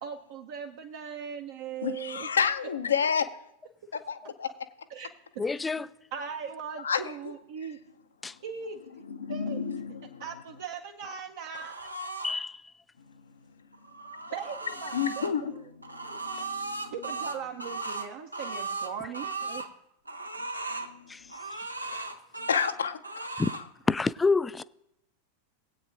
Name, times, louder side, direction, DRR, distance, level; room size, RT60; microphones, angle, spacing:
voice 1, 0.0-2.3 4.9-5.1 6.1-7.8 8.4-8.8 9.3-9.6 10.2-12.0 14.3-15.3 16.0-16.2 16.9-19.6, right 6 dB, 55° right, 0.8 m, -39 dB
voice 2, 1.8-3.2 4.1-4.5 6.8-7.1 9.0-10.2 14.9-15.6 15.9-16.9 20.7-21.1 22.4-23.3, left 7 dB, 70° left, 0.7 m, -30 dB
voice 3, 5.4-5.9 8.2-8.4 12.2-12.6 21.1-21.3 23.4-23.5 23.9-24.6, left 4 dB, 10° left, 0.3 m, -27 dB
sound 1, 11.5-12.3 13.7-15.3 15.8-19.7 20.1-20.9 21.3-22.7 23.0-23.6, right 3 dB, 85° right, 0.8 m, -37 dB
20.0 x 8.6 x 2.6 m
figure-of-eight pair, 90°, 0 cm